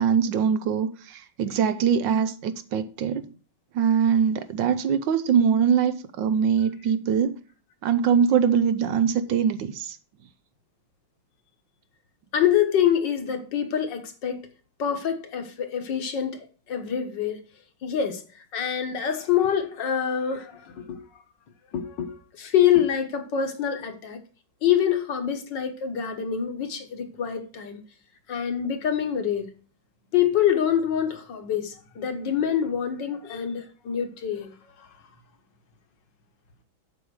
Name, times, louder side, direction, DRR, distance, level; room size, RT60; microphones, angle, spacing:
voice 1, 0.0-3.3 3.7-7.4 7.8-10.0, right 7 dB, 75° right, 1.4 m, -23 dB
voice 2, 12.3-14.4 14.8-17.4 17.8-21.0 21.7-24.2 24.6-27.8 28.3-29.5 30.1-34.9, left 9 dB, 65° left, 1.8 m, -26 dB
7.8 x 7.2 x 4.8 m
omnidirectional pair, 2.2 m